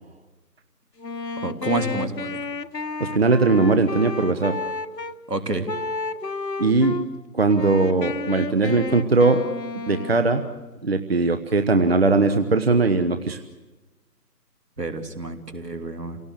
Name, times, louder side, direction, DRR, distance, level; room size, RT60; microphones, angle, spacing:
Wind instrument woodwind instrument, 1.0-5.2 5.7-7.1 7.5-10.7, left 4 dB, 75° left, 1.3 m, -31 dB
voice 1, 1.4-2.4 5.3-5.7 14.8-16.2, right 2 dB, 70° right, 8 dB, 3.1 m, -28 dB
voice 2, 3.0-4.6 6.6-7.0 7.3-9.4 9.7-10.4 10.8-13.4, right 3 dB, 35° right, 8 dB, 1.0 m, -20 dB
28.0 x 18.0 x 8.1 m, 1.1 s
figure-of-eight pair, 150°, 49 cm